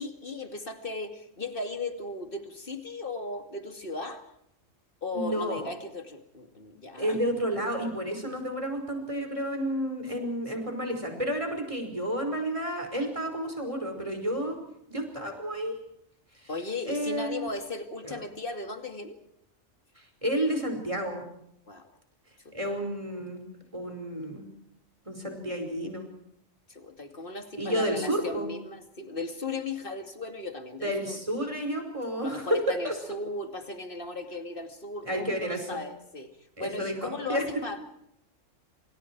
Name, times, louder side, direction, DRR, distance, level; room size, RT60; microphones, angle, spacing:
voice 1, 0.0-4.2 5.0-7.2 16.5-19.2 21.7-22.0 22.4-22.6 26.7-31.2 32.2-37.8, left 3 dB, 45° left, 6 dB, 2.6 m, -37 dB
voice 2, 5.1-5.6 7.0-14.6 14.9-15.8 16.4-16.5 16.9-17.4 18.0-18.2 20.0-21.3 22.5-23.4 23.7-24.5 25.1-26.0 27.6-28.5 30.8-32.5 32.8-32.9 35.1-35.8 36.6-37.4, equal, 25° right, 5 dB, 5.3 m, -31 dB
28.0 x 27.5 x 4.7 m, 0.74 s
omnidirectional pair, 1.3 m